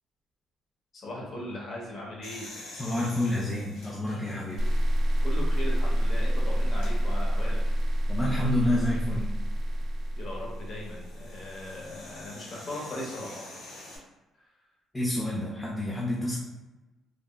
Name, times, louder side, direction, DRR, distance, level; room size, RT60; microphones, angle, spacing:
voice 1, 0.9-2.5 5.2-7.6 10.2-13.5, left 1 dB, 50° left, -3 dB, 0.9 m, -38 dB
sound 1, 2.2-5.1 5.7-5.8 6.7-6.9 9.1-14.0, left 2 dB, 80° left, 1.0 m, -47 dB
voice 2, 2.8-4.6 8.1-9.3 14.9-16.4, left 1 dB, 15° left, -4 dB, 0.5 m, -28 dB
sound 2, 4.6-11.7, equal, 50° right, 0.4 m, -27 dB
3.4 x 2.0 x 2.3 m, 1.1 s
cardioid pair, 85°, 0 cm